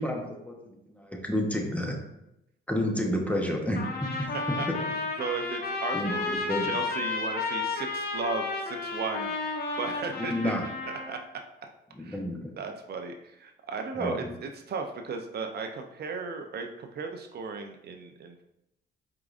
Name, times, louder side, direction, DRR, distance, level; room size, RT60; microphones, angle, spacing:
voice 1, 0.0-2.0 2.7-5.0 5.9-6.7 10.2-10.6 11.9-12.5 13.9-14.3, equal, 5° left, 1 dB, 0.8 m, -31 dB
Trumpet, 3.8-11.2, left 4 dB, 50° left, 0.9 m, -32 dB
voice 2, 4.3-4.7 5.2-10.5 11.1-11.2 12.0-12.2 12.6-18.3, right 4 dB, 55° right, 4 dB, 0.5 m, -35 dB
4.8 x 3.7 x 2.4 m, 0.84 s
cardioid pair, 90°, 20 cm